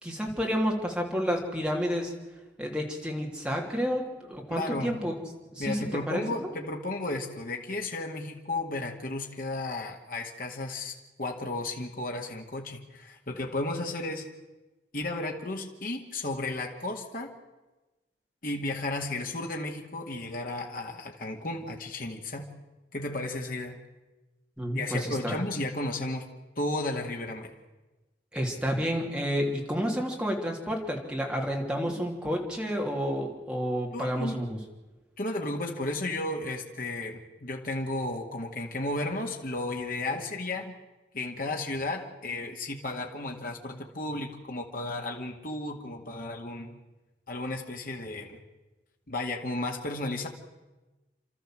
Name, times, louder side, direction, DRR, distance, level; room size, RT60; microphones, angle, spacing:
voice 1, 0.0-2.1 2.6-5.1 5.5-6.5 24.6-25.4 28.3-34.6, equal, 5° right, 0 dB, 3.1 m, -30 dB
voice 2, 4.5-5.0 5.6-14.3 14.9-17.3 18.4-22.5 22.9-23.8 24.7-26.3 26.6-27.5 33.9-34.5 35.2-40.7 41.1-46.8 47.3-48.4 49.1-50.3, left 2 dB, 50° left, 1 dB, 2.2 m, -34 dB
30.0 x 13.0 x 7.7 m, 1.1 s
head